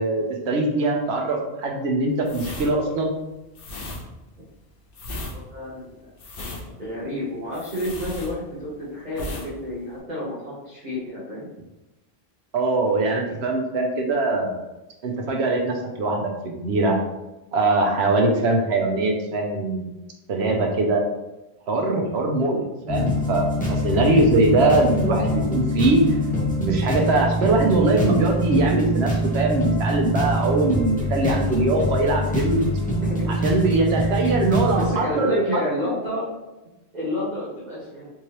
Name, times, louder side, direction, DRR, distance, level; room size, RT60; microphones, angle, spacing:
voice 1, 0.0-3.1 12.5-14.5 15.0-17.0 17.5-19.9 20.3-21.0 21.7-26.0 26.6-32.6 33.4-35.9, right 2 dB, 80° right, 1 dB, 1.0 m, -22 dB
sound 1, 2.2-8.8 9.1-9.5 9.8-10.0, left 1 dB, 60° left, 0.8 m, -36 dB
voice 2, 5.3-6.0 6.8-11.5 33.0-33.5 34.2-34.3 34.7-36.3 36.9-38.1, left 1 dB, 45° right, -8 dB, 1.1 m, -30 dB
sound 2, 22.9-34.9, equal, 10° left, 0.9 m, -24 dB
3.5 x 3.1 x 2.9 m, 1.0 s
omnidirectional pair, 1.1 m